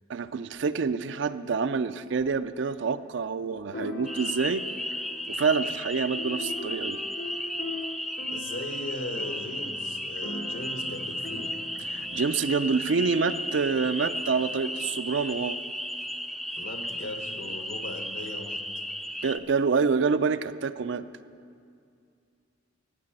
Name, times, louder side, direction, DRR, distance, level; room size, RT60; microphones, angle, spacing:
voice 1, 0.1-4.6 5.3-7.0 11.9-15.6 19.2-21.1, right 5 dB, 70° right, 13 dB, 0.4 m, -27 dB
sound 1, 2.2-2.3 3.7-14.9, left 2 dB, 90° left, 1.8 m, -42 dB
sound 2, 4.1-19.4, left 1 dB, ahead, 0.3 m, -34 dB
voice 2, 8.3-11.6 16.6-18.6, left 1 dB, 75° left, 5 dB, 1.3 m, -38 dB
13.5 x 6.7 x 8.9 m, 2.4 s
head